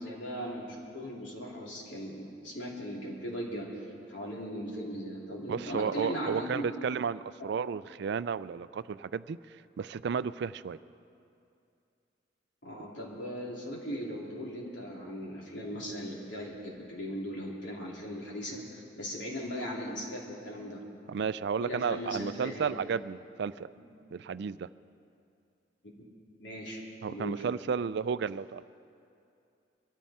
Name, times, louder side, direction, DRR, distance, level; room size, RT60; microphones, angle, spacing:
voice 1, 0.0-3.7 4.1-6.9 12.6-20.8 21.6-22.7 23.8-23.9 25.9-26.0 26.4-26.8 27.1-27.4, equal, 80° left, -3 dB, 3.2 m, -38 dB
voice 2, 5.5-9.4 9.8-10.8 21.1-23.7 24.1-24.7 27.0-28.6, right 6 dB, 65° right, 16 dB, 0.4 m, -33 dB
23.5 x 13.5 x 4.3 m, 2.6 s
head